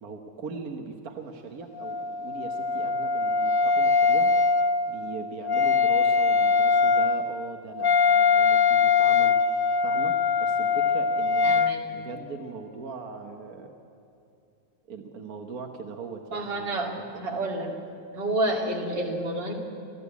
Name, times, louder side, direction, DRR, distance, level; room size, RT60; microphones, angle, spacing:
voice 1, 0.0-4.3 4.9-9.4 9.8-11.6 11.9-13.7 14.9-17.2, right 5 dB, 55° right, 4 dB, 1.6 m, -40 dB
Wind instrument woodwind instrument, 1.8-11.8, left 5 dB, 85° left, 0.4 m, -22 dB
voice 2, 11.4-11.8 16.3-17.7 18.1-19.5, right 2 dB, 75° right, 0 dB, 3.1 m, -29 dB
29.5 x 13.5 x 8.4 m, 2.6 s
omnidirectional pair, 2.0 m